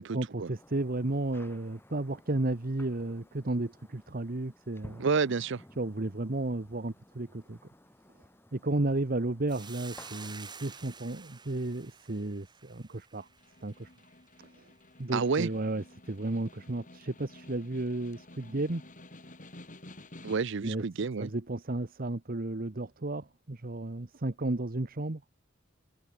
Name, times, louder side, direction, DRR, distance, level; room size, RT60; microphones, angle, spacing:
voice 1, 0.0-5.1 5.8-7.6 8.5-13.3 13.6-13.9 14.4-14.5 15.0-18.8 20.6-20.8 21.2-25.2, right 2 dB, 45° right, 1.1 m, -33 dB
sound 1, 0.6-10.3, left 1 dB, 10° left, 5.5 m, -56 dB
voice 2, 5.0-5.6 15.1-15.5 20.2-21.3, right 5 dB, 65° right, 0.6 m, -29 dB
Hiss, 9.5-14.0, right 5 dB, 20° right, 2.6 m, -49 dB
Snare drum, 13.2-20.7, left 1 dB, 40° left, 6.7 m, -52 dB
head